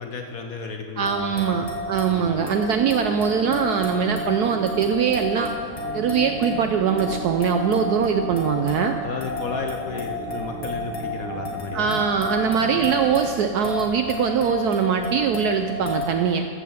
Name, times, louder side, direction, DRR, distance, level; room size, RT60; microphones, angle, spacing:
voice 1, 0.0-1.6 2.1-2.3 9.0-12.0, left 5 dB, 60° left, 3 dB, 0.9 m, -33 dB
voice 2, 1.0-5.5 5.9-9.0 11.7-16.5, right 7 dB, 75° right, 6 dB, 0.9 m, -22 dB
sound 1, 1.1-16.1, left 2 dB, 85° left, 2.7 m, -32 dB
sound 2, 2.2-13.1, right 2 dB, 40° left, 1.9 m, -37 dB
15.0 x 6.2 x 6.9 m, 2.3 s
omnidirectional pair, 2.1 m